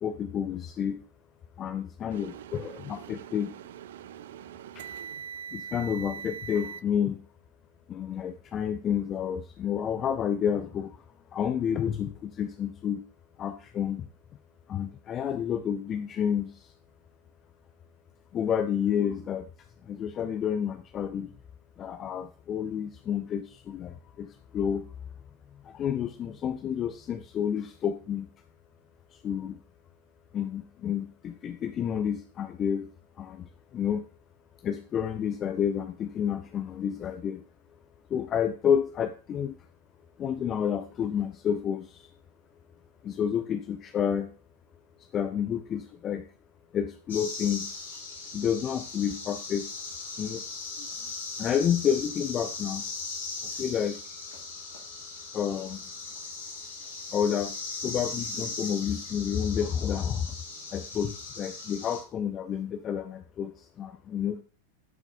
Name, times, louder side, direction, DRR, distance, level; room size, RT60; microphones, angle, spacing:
voice 1, 0.0-1.0 1.6-3.6 4.7-4.8 5.5-7.2 7.9-11.0 11.3-13.0 13.4-14.1 14.7-16.7 18.3-19.5 19.8-21.3 21.8-24.9 25.5-28.3 29.1-29.6 30.3-32.9 33.2-34.0 34.6-37.4 38.1-39.5 40.2-42.1 43.0-44.3 45.0-46.2 46.7-47.8 48.3-49.9 50.2-50.4 51.4-52.8 53.4-54.0 55.3-55.9 57.1-60.4 60.7-64.4, left 8 dB, 30° left, 9 dB, 0.5 m, -30 dB
sound 1, 2.1-6.8, right 8 dB, 55° right, 0.3 m, -42 dB
sound 2, 47.1-62.0, left 3 dB, 65° left, 3.1 m, -39 dB
10.5 x 5.9 x 2.2 m, 0.38 s
figure-of-eight pair, 90°, 0 cm